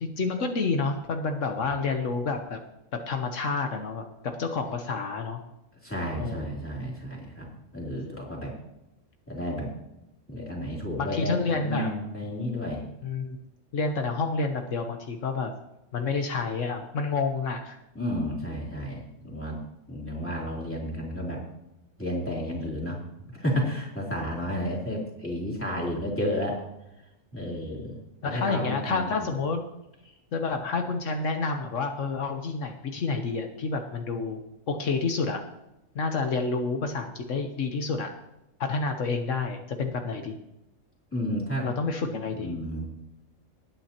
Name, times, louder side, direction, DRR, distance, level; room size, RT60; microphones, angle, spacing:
voice 1, 0.0-2.6 2.9-5.4 6.1-6.6 11.0-11.9 13.0-13.4 13.7-15.5 15.9-17.8 28.2-29.6 30.3-34.4 34.7-35.4 35.9-38.1 38.6-40.4 41.6-42.5, left 4 dB, 75° left, 5 dB, 1.3 m, -29 dB
voice 2, 5.8-8.5 9.3-9.7 10.3-12.8 17.9-19.6 19.9-21.4 22.0-23.0 23.3-26.6 27.3-29.1 41.1-41.7 42.3-42.9, equal, 10° left, -3 dB, 3.1 m, -32 dB
19.0 x 9.1 x 2.9 m, 0.90 s
omnidirectional pair, 1.3 m